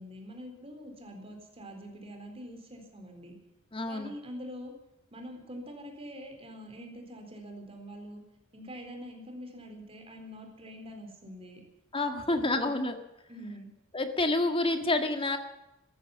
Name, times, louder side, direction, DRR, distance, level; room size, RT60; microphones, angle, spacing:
voice 1, 0.0-3.3 3.9-4.7 5.1-8.2 8.5-11.6 12.3-12.5 13.3-13.7, equal, 30° right, 3 dB, 4.0 m, -44 dB
voice 2, 3.7-4.1 11.9-13.0 13.9-15.4, left 2 dB, 25° left, 7 dB, 1.7 m, -28 dB
14.0 x 14.0 x 7.2 m, 0.93 s
head